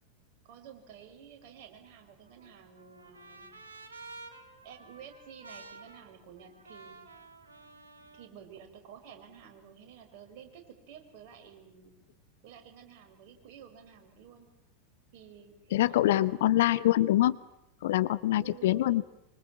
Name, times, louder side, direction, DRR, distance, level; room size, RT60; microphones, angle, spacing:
voice 1, 0.4-3.5 4.6-7.0 8.1-11.9 12.4-14.5 15.1-16.4 18.3-19.0, right 8 dB, 50° right, 5 dB, 5.5 m, -51 dB
Trumpet, 2.0-8.3, right 3 dB, 75° right, 2.7 m, -51 dB
voice 2, 15.7-17.4 17.8-19.0, left 14 dB, 60° left, 17 dB, 0.9 m, -25 dB
25.5 x 25.0 x 7.4 m, 0.87 s
figure-of-eight pair, 85°, 0 cm